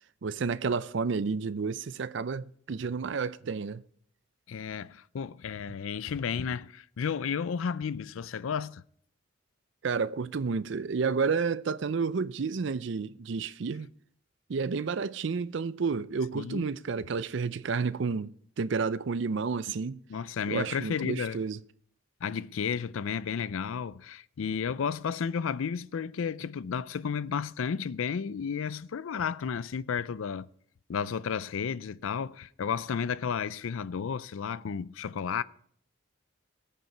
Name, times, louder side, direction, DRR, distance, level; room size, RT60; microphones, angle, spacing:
voice 1, 0.2-3.8 9.8-13.9 14.5-20.0 20.5-21.6, right 5 dB, 60° right, 0.4 m, -31 dB
voice 2, 4.5-8.8 16.3-16.6 19.7-19.8 20.1-21.4 22.2-30.5 30.9-35.4, left 6 dB, 80° left, 0.4 m, -32 dB
19.0 x 6.7 x 4.5 m
head